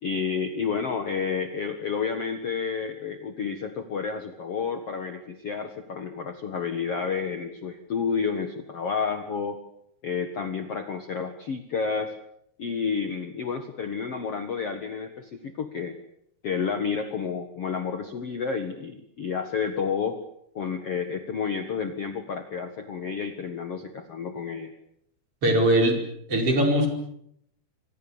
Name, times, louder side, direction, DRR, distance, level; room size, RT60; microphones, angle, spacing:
voice 1, 0.0-9.6 10.0-12.1 12.6-16.0 16.4-20.2 20.6-24.7, left 6 dB, 50° left, 8 dB, 2.0 m, -30 dB
voice 2, 25.4-26.0 26.3-26.9, right 1 dB, 35° right, 4 dB, 5.6 m, -20 dB
27.5 x 25.5 x 7.2 m, 0.73 s
omnidirectional pair, 4.5 m